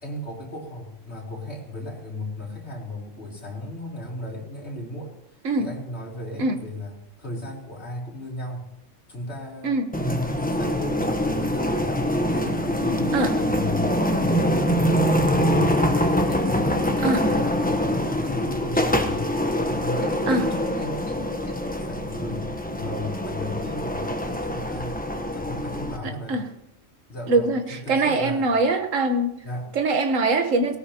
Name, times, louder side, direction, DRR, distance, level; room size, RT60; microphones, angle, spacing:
voice 1, 0.0-8.7 9.1-16.0 16.2-19.3 19.6-25.0 25.3-26.4 27.1-28.5 29.4-29.7, left 1 dB, 55° left, -3 dB, 3.8 m, -35 dB
sound 1, 9.9-26.0, equal, 10° left, 0.9 m, -24 dB
voice 2, 26.0-26.5 27.3-29.3 29.7-30.8, right 2 dB, 80° right, 7 dB, 1.6 m, -23 dB
19.0 x 18.0 x 2.9 m, 0.83 s
omnidirectional pair, 1.3 m